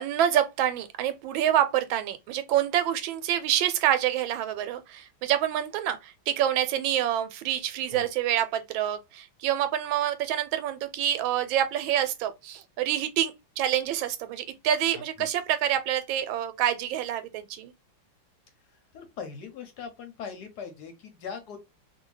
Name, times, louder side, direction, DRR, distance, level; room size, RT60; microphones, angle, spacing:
voice 1, 0.0-17.7, right 11 dB, 85° right, 1.3 m, -27 dB
voice 2, 14.9-15.3 18.9-21.6, left 6 dB, 65° left, 1.1 m, -40 dB
2.8 x 2.6 x 3.1 m
omnidirectional pair, 2.1 m